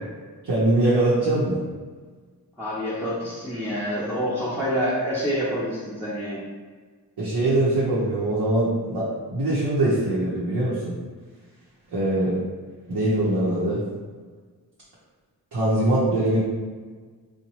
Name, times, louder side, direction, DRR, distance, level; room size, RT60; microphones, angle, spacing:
voice 1, 0.4-1.6 7.2-10.9 11.9-12.4 12.9-13.8 15.5-16.4, right 1 dB, 75° right, -8 dB, 0.8 m, -22 dB
voice 2, 2.6-6.4, equal, 5° right, -10 dB, 0.8 m, -27 dB
2.8 x 2.2 x 3.0 m, 1.5 s
cardioid pair, 50°, 40 cm